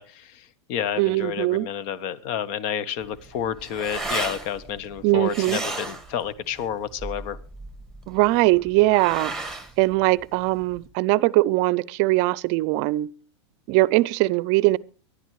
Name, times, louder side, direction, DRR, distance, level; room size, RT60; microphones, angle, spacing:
voice 1, 0.0-7.4, left 9 dB, 50° left, 1.1 m, -30 dB
voice 2, 1.0-1.7 5.0-5.6 8.1-9.3 9.8-13.1 13.7-14.8, right 20 dB, 50° right, 0.6 m, -21 dB
sound 1, 3.0-10.9, right 2 dB, 5° left, 1.9 m, -35 dB
24.0 x 11.5 x 3.2 m
hypercardioid pair, 115°, 15 cm